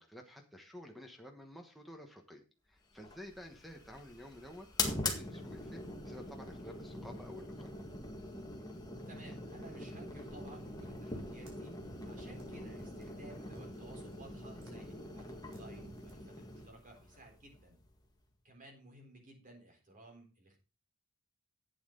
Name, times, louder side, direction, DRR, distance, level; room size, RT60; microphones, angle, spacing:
voice 1, 0.0-7.7, left 1 dB, ahead, 4 dB, 1.2 m, -51 dB
sound 1, 2.9-18.2, left 2 dB, 20° left, 1.8 m, -43 dB
voice 2, 9.1-11.7 12.0-17.8 18.4-20.6, right 1 dB, 40° right, 2 dB, 3.9 m, -56 dB
sound 2, 10.2-16.1, right 1 dB, 65° right, 4.4 m, -61 dB
11.0 x 8.8 x 3.9 m, 0.34 s
head